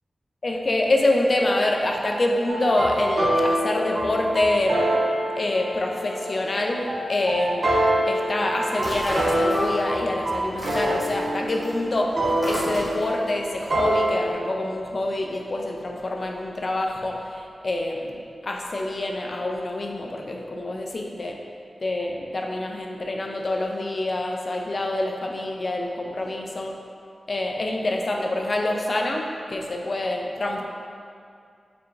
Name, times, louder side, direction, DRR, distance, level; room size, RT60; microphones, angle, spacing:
voice 1, 0.4-5.0 5.4-7.7 8.1-21.4 21.8-26.7 27.3-30.6, left 1 dB, 50° left, 1 dB, 0.4 m, -26 dB
sound 1, 2.5-14.3, right 1 dB, 50° right, 0.7 m, -26 dB
sound 2, 8.7-10.0 10.3-13.2, equal, 10° right, 1.2 m, -33 dB
4.8 x 3.5 x 2.4 m, 2.4 s
wide cardioid pair, 70°, 0 cm